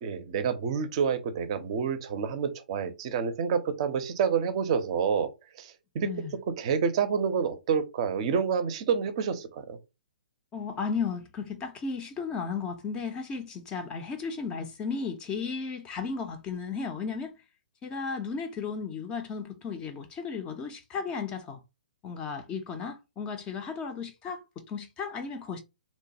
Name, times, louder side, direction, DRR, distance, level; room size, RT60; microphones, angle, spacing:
voice 1, 0.0-5.3 5.6-6.1 6.6-9.8, right 6 dB, 40° right, 0.5 m, -28 dB
voice 2, 6.0-6.3 10.5-17.3 17.8-21.6 22.0-25.6, left 5 dB, 20° left, 0.4 m, -34 dB
3.0 x 2.2 x 2.7 m
figure-of-eight pair, 125°, 5 cm